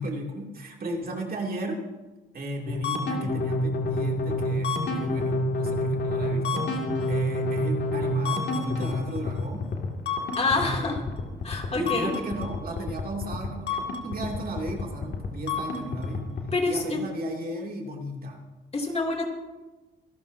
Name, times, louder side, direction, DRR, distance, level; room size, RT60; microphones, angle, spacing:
voice 1, 0.0-1.8 2.3-9.7 10.5-11.0 11.7-16.3 16.7-18.4, right 1 dB, 50° right, 0 dB, 2.7 m, -35 dB
sound 1, 2.7-16.5, left 2 dB, 60° left, 2.4 m, -28 dB
voice 2, 10.4-11.0 11.4-12.1 16.5-17.0 18.7-19.3, left 3 dB, 30° left, 1 dB, 2.8 m, -27 dB
26.0 x 12.0 x 2.8 m, 1.2 s
cardioid pair, 90°, 20 cm